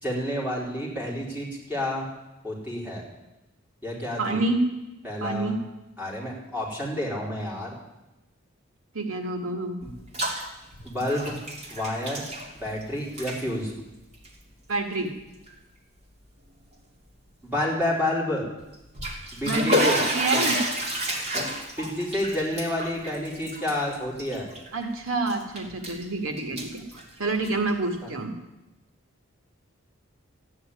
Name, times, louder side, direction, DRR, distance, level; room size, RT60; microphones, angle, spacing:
voice 1, 0.0-2.1 2.4-3.0 3.8-4.5 5.0-5.5 6.0-7.7 9.8-9.9 10.8-11.4 11.7-12.2 12.6-13.7 17.4-18.4 19.3-20.0 20.3-20.5 21.8-24.5 28.0-28.1, left 1 dB, 5° right, -5 dB, 4.5 m, -29 dB
voice 2, 4.2-4.6 5.2-5.6 8.9-9.8 14.7-15.1 19.4-20.6 24.7-26.8 27.2-28.3, right 2 dB, 80° right, 5 dB, 1.9 m, -27 dB
Bathtub (filling or washing), 9.8-10.4 10.7-12.8 13.1-13.4 14.1-14.3 14.9-15.0 15.5-15.6 18.7-24.9 25.3-26.0 26.4-27.7, equal, 30° right, 2.8 m, -30 dB
14.5 x 9.6 x 9.8 m, 0.98 s
head